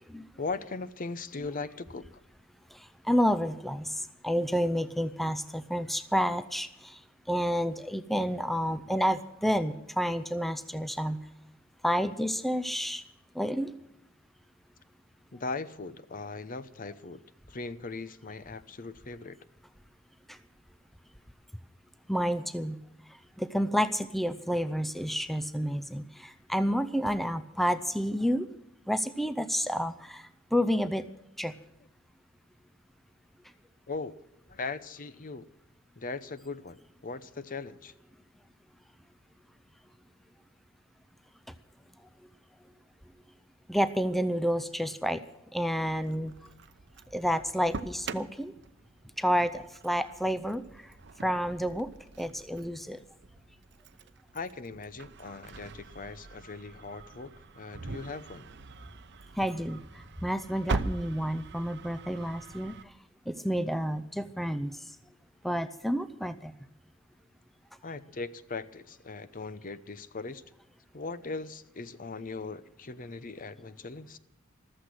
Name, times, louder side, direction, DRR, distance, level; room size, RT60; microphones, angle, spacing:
voice 1, 0.4-2.1 15.3-17.2 17.5-19.4 33.9-34.1 34.5-35.5 36.0-37.9 54.3-58.5 67.8-70.4 70.9-74.2, left 3 dB, 40° left, 15 dB, 0.8 m, -39 dB
voice 2, 3.0-7.0 7.3-11.2 11.8-13.0 13.4-13.7 20.3-20.4 22.1-22.8 23.4-28.5 28.9-30.2 30.5-31.0 31.4-31.5 43.7-45.2 45.5-46.3 47.1-48.5 49.2-50.6 51.2-51.9 52.2-53.0 59.4-59.8 60.2-62.8 63.3-64.7 65.4-66.5, equal, ahead, 12 dB, 0.5 m, -29 dB
Engine starting, 45.9-62.8, right 3 dB, 55° right, 0.8 m, -42 dB
14.5 x 13.5 x 6.1 m, 0.86 s
head